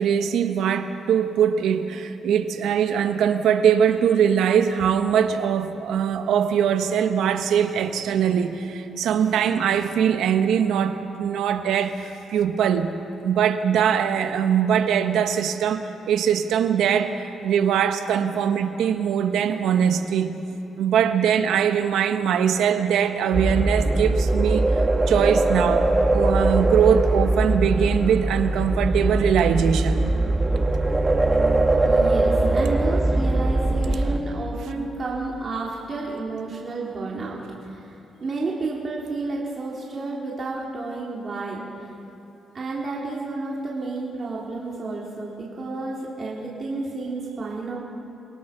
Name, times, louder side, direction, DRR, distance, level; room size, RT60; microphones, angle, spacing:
voice 1, 0.0-12.9 13.2-20.3 20.8-30.1, right 8 dB, 85° right, 7 dB, 1.4 m, -22 dB
sound 1, 23.3-34.2, right 2 dB, 20° right, 1.5 m, -21 dB
voice 2, 31.8-37.4 37.7-37.8 38.2-41.6 42.5-47.8, right 3 dB, 40° right, -4 dB, 3.7 m, -30 dB
28.5 x 18.0 x 6.1 m, 2.8 s
cardioid pair, 105°, 0 cm